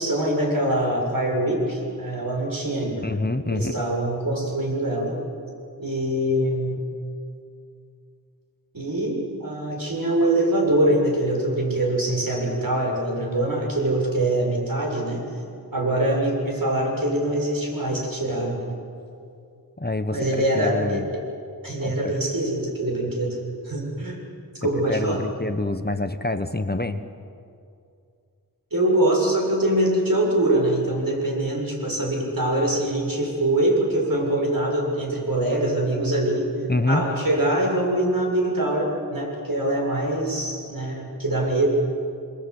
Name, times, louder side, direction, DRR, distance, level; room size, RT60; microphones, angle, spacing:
voice 1, 0.0-3.1 3.5-5.2 5.8-6.8 8.7-15.3 15.7-18.7 20.1-21.2 21.6-23.4 23.6-24.2 24.6-25.2 28.7-36.5 36.9-41.7, right 1 dB, 55° right, -1 dB, 7.2 m, -23 dB
voice 2, 3.0-3.7 19.8-21.1 21.8-22.1 24.9-27.0 36.7-37.0, left 2 dB, 25° left, 9 dB, 1.3 m, -26 dB
26.5 x 26.5 x 8.4 m, 2.5 s
wide cardioid pair, 50°, 40 cm